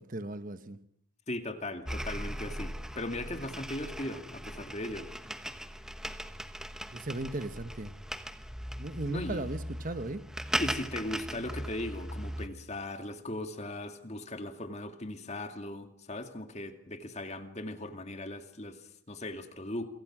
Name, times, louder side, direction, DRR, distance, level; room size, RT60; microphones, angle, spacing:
voice 1, 0.1-0.8 6.9-7.9 8.8-10.2, right 2 dB, 40° right, 11 dB, 1.2 m, -36 dB
voice 2, 1.3-5.1 9.1-9.5 10.6-19.9, left 1 dB, 30° left, 7 dB, 2.3 m, -38 dB
sound 1, 1.8-12.5, equal, 5° right, 1.2 m, -38 dB
27.5 x 24.5 x 6.2 m, 0.66 s
head